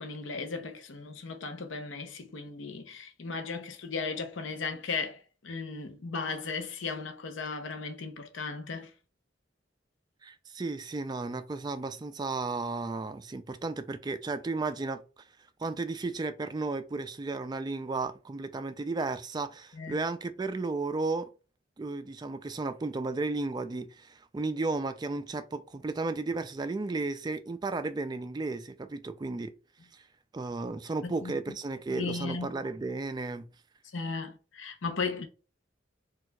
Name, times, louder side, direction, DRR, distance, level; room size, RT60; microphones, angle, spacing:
voice 1, 0.0-8.9 19.7-20.0 31.0-31.3 31.9-32.5 33.9-35.3, left 4 dB, 80° left, 0.6 m, -36 dB
voice 2, 10.2-15.0 15.6-21.3 21.8-29.5 29.9-30.0 30.3-33.5, right 3 dB, 20° right, 0.3 m, -34 dB
4.3 x 2.3 x 2.3 m
head